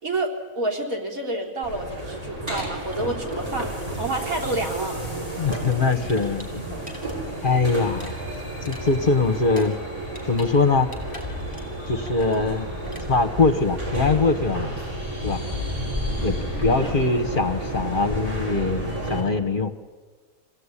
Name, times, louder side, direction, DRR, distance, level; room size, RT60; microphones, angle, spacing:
voice 1, 0.0-5.0 16.8-16.9, right 2 dB, 80° right, -1 dB, 4.2 m, -29 dB
sound 1, 1.6-19.2, right 1 dB, 25° right, 7.6 m, -31 dB
sound 2, 2.4-3.8 4.2-4.4 4.7-7.2 7.5-10.5 10.8-11.8 12.1-12.4 12.8-13.1, equal, 5° right, 5.2 m, -43 dB
voice 2, 5.4-6.7 7.4-8.1 8.6-9.8 10.3-10.9 11.9-12.7 13.1-14.7 15.2-15.4 16.2-19.7, left 3 dB, 40° left, 6 dB, 1.3 m, -22 dB
26.0 x 17.0 x 9.9 m, 1.5 s
omnidirectional pair, 1.4 m